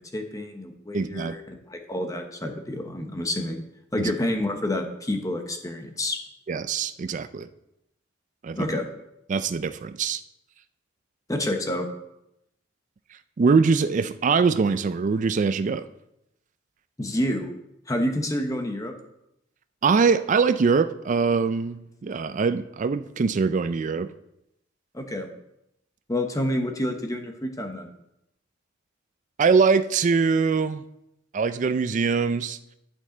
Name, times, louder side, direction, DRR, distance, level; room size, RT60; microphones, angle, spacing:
voice 1, 0.1-1.4 1.7-3.6 3.9-6.2 8.6-8.9 11.3-11.9 17.0-17.5 17.9-18.9 24.9-25.3 26.1-27.9, left 1 dB, 15° left, 5 dB, 0.9 m, -28 dB
voice 2, 0.9-1.4 4.0-4.1 6.5-7.5 8.4-8.8 9.3-10.2 13.4-15.9 19.8-24.1 29.4-30.8 31.3-32.6, right 5 dB, 40° right, 12 dB, 0.4 m, -23 dB
11.5 x 5.5 x 3.8 m, 0.83 s
head